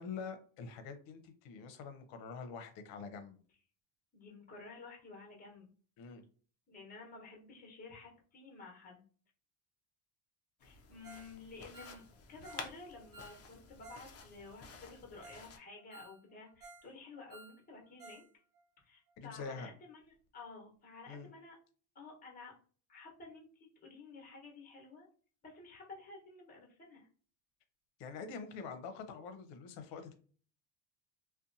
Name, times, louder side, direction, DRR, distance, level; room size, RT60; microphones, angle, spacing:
voice 1, 0.0-3.4 6.0-6.2 19.2-19.7 21.1-21.3 28.0-30.1, left 5 dB, 65° left, 8 dB, 0.7 m, -45 dB
voice 2, 4.1-5.7 6.7-9.1 10.6-12.0 12.3-18.2 18.8-21.6 21.9-22.5 22.9-25.1 25.4-27.1, left 3 dB, 20° left, -1 dB, 1.0 m, -52 dB
sound 1, 10.6-15.6, left 5 dB, 35° left, 0.4 m, -52 dB
Ringtone, 11.0-11.3 11.6-14.1 14.4-14.5 14.9-15.0 15.2-15.5 15.8-16.9 17.2-18.3 18.5-18.6 19.1-19.2, right 3 dB, 45° right, 0.7 m, -56 dB
2.6 x 2.2 x 2.6 m, 0.42 s
cardioid pair, 115°, 46 cm